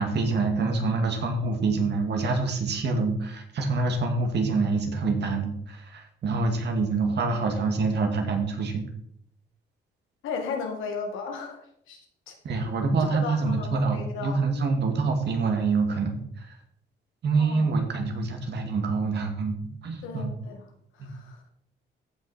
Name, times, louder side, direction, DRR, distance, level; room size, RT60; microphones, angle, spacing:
voice 1, 0.0-8.9 12.4-16.6 17.2-19.6 19.8-20.3 21.0-21.1, right 3 dB, 60° right, 4 dB, 2.3 m, -26 dB
voice 2, 10.2-12.4 13.0-14.5 17.4-17.7 20.0-20.7 20.9-21.4, left 5 dB, 85° left, 3 dB, 2.1 m, -36 dB
14.5 x 5.5 x 4.4 m, 0.69 s
cardioid pair, 90°, 20 cm